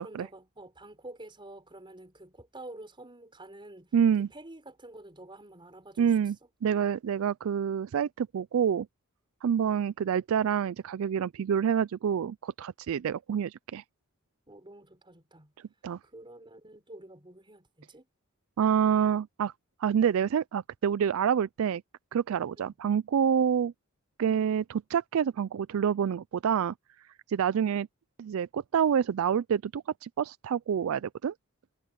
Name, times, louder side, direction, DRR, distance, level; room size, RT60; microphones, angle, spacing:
voice 1, 0.0-6.5 14.5-15.5 16.0-18.1 22.6-22.7, right 1 dB, 20° right, 4.8 m, -49 dB
voice 2, 3.9-4.3 6.0-6.4 6.6-8.9 9.4-13.8 15.8-16.0 18.6-19.5 19.8-21.8 22.1-23.7 24.2-26.7 27.3-27.9 28.2-31.3, right 8 dB, 65° right, 0.3 m, -27 dB
head